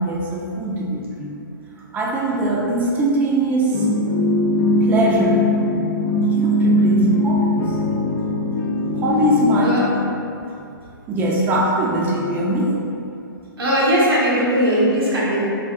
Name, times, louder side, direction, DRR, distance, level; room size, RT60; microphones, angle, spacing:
voice 1, 0.0-1.3 1.9-3.9 4.8-5.5 6.4-7.8 8.9-9.8 11.1-12.7, right 1 dB, 15° right, -4 dB, 0.4 m, -21 dB
sound 1, 3.7-10.1, left 1 dB, 65° left, 0.4 m, -20 dB
voice 2, 13.6-15.5, equal, 90° right, -7 dB, 1.1 m, -19 dB
3.6 x 2.4 x 2.3 m, 2.6 s
hypercardioid pair, 140°, 12 cm